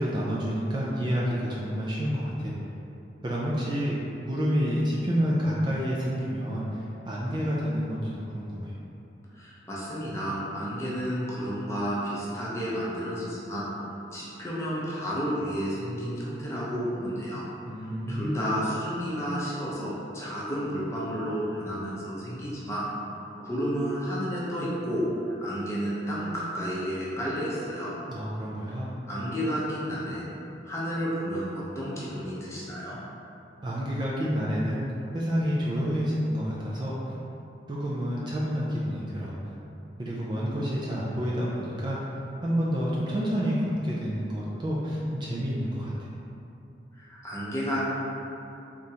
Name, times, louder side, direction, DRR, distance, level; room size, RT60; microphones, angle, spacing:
voice 1, 0.0-2.5 3.2-4.0 4.3-8.8 17.6-18.5 28.1-29.0 33.6-34.9 35.1-37.1 37.7-39.5 40.0-46.1, equal, 25° right, -6 dB, 0.3 m, -29 dB
voice 2, 9.3-13.6 14.1-17.5 18.1-22.8 23.4-25.0 25.4-27.9 29.1-30.2 30.6-33.0 46.9-47.9, equal, 15° left, -7 dB, 0.7 m, -31 dB
3.8 x 3.4 x 2.8 m, 2.8 s
head